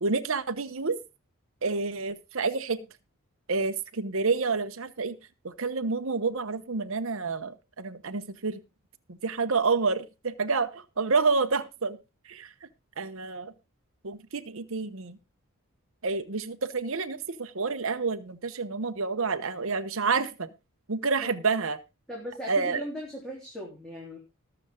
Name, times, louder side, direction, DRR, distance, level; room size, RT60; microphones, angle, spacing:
voice 1, 0.0-1.0 1.6-2.8 3.5-5.2 5.4-8.6 9.2-12.0 12.3-12.5 13.0-13.5 14.0-15.2 16.0-20.5 20.9-21.8 22.5-22.8, right 4 dB, 65° right, 0.9 m, -28 dB
voice 2, 22.1-24.2, left 1 dB, 5° left, 3.4 m, -38 dB
19.5 x 7.0 x 3.7 m
head